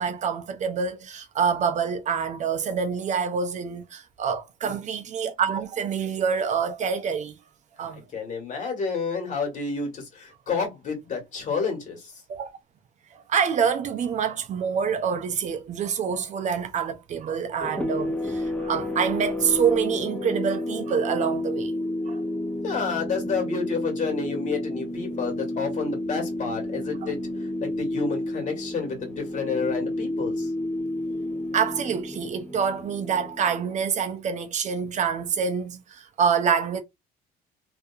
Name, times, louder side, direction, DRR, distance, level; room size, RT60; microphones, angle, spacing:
voice 1, 0.0-7.3 7.8-8.0 12.3-12.5 13.1-21.7 22.1-22.2 31.5-36.8, right 7 dB, 45° right, 0.5 m, -26 dB
voice 2, 7.8-12.2 22.6-30.5, left 5 dB, 45° left, 1.5 m, -30 dB
sound 1, 17.6-33.9, left 1 dB, 10° left, 0.5 m, -31 dB
2.6 x 2.4 x 2.4 m
cardioid pair, 110°, 17 cm